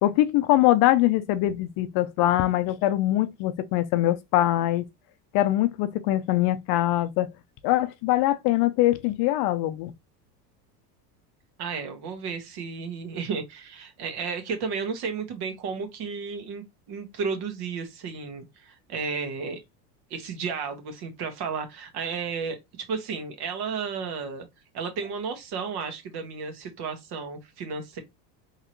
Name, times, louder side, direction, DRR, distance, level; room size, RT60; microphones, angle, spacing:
voice 1, 0.0-4.9 5.3-7.3 7.6-9.9, left 15 dB, 50° left, 0.6 m, -23 dB
voice 2, 11.6-19.6 20.1-22.6 22.9-24.5 24.7-28.0, right 5 dB, 50° right, 1.6 m, -33 dB
3.7 x 3.2 x 3.0 m
supercardioid pair, 115°, 49 cm